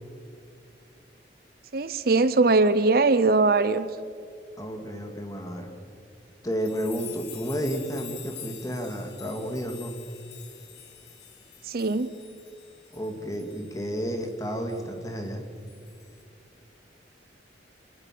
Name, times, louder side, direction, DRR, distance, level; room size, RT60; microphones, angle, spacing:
voice 1, 1.7-3.9 11.7-12.1, right 3 dB, 55° right, 14 dB, 0.7 m, -21 dB
voice 2, 4.6-5.7 6.4-9.9 12.9-15.4, equal, 20° left, 4 dB, 2.3 m, -31 dB
sound 1, 6.5-14.3 14.7-14.8 15.7-16.2, left 10 dB, 65° left, 2.1 m, -46 dB
26.0 x 18.5 x 6.1 m, 2.3 s
head